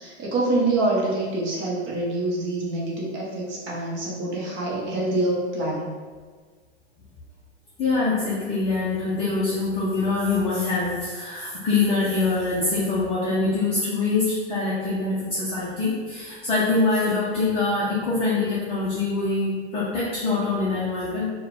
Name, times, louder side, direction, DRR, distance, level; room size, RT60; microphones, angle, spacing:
voice 1, 0.0-5.9, right 2 dB, 35° right, -5 dB, 0.9 m, -26 dB
voice 2, 7.8-21.3, left 3 dB, 15° left, -7 dB, 0.5 m, -24 dB
4.3 x 2.3 x 3.3 m, 1.5 s
hypercardioid pair, 130°, 35 cm